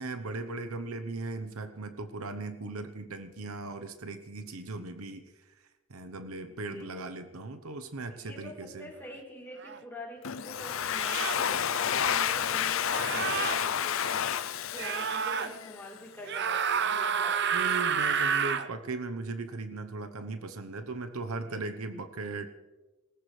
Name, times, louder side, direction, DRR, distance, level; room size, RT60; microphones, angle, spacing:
voice 1, 0.0-5.2 5.9-8.9 17.5-22.5, right 3 dB, 85° right, 9 dB, 1.0 m, -38 dB
voice 2, 6.5-7.1 8.1-17.7 21.3-21.8, equal, 10° left, -3 dB, 3.8 m, -46 dB
sound 1, 9.6-9.8 11.0-11.5 12.9-13.6 14.8-15.5 16.2-18.7, right 7 dB, 50° right, 0.7 m, -29 dB
Domestic sounds home sounds, 10.2-15.9, left 8 dB, 65° left, 0.5 m, -30 dB
20.0 x 19.0 x 3.3 m, 1.1 s
head